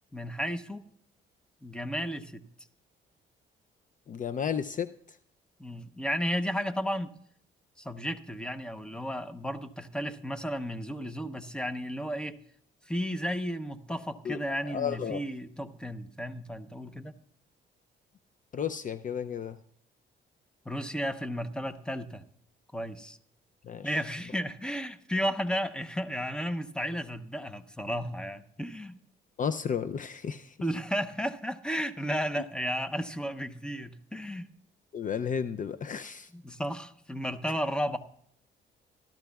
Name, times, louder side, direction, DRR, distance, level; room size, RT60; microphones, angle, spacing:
voice 1, 0.1-0.9 1.6-2.4 5.6-7.2 7.8-12.4 12.9-17.2 20.6-22.2 22.7-23.2 23.8-29.0 30.6-34.5 36.3-38.0, equal, 5° left, 9 dB, 0.9 m, -33 dB
voice 2, 4.1-5.2 14.2-14.4 14.7-15.2 18.5-19.6 23.7-24.0 29.4-30.6 34.9-36.3, left 7 dB, 40° left, 12 dB, 0.5 m, -33 dB
16.5 x 13.0 x 2.3 m, 0.65 s
cardioid pair, 90°, 20 cm